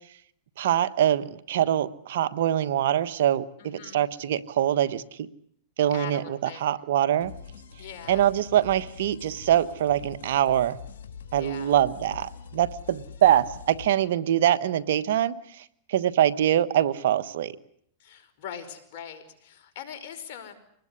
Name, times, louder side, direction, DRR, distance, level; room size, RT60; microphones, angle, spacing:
voice 1, 0.6-5.3 5.8-7.3 8.1-10.8 11.3-15.4 15.9-17.5, right 11 dB, 75° right, 14 dB, 1.4 m, -24 dB
voice 2, 3.6-4.0 5.9-6.6 7.8-8.2 11.3-11.8 18.0-20.5, left 8 dB, 60° left, 7 dB, 5.1 m, -41 dB
sound 1, 7.2-13.9, left 7 dB, 80° left, 3.8 m, -44 dB
25.5 x 20.5 x 9.9 m, 0.67 s
hypercardioid pair, 120°, 0 cm